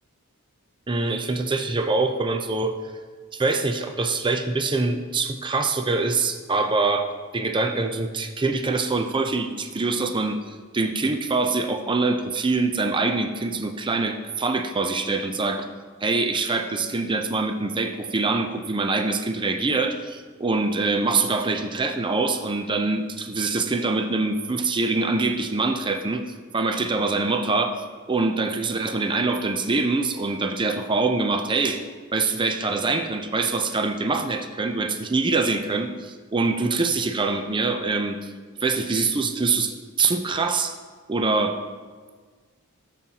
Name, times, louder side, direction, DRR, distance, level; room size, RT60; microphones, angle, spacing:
voice 1, 0.9-2.7 3.3-7.1 7.3-15.7 16.0-26.2 26.5-27.8 28.1-31.8 32.1-38.3 38.6-40.7 41.1-41.6, right 3 dB, 20° right, 6 dB, 0.5 m, -24 dB
16.0 x 7.3 x 2.9 m, 1.5 s
head